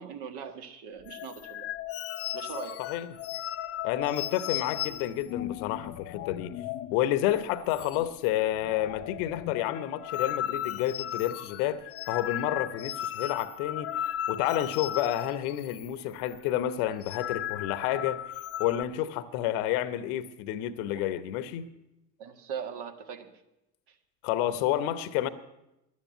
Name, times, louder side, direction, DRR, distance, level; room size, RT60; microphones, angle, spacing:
voice 1, 0.0-1.7 2.3-2.8 20.9-21.1 22.2-23.3 23.9-24.0, right 7 dB, 50° right, 1.6 m, -40 dB
sound 1, 1.1-7.0 7.3-7.4 7.7-8.3 8.6-15.9 16.2-16.4 16.9-18.8, left 12 dB, 30° left, 0.5 m, -36 dB
voice 2, 3.8-6.5 6.9-13.9 14.3-18.2 18.6-21.7 24.2-25.3, left 12 dB, 60° left, 1.0 m, -30 dB
11.5 x 9.5 x 9.0 m
hypercardioid pair, 75°, 50 cm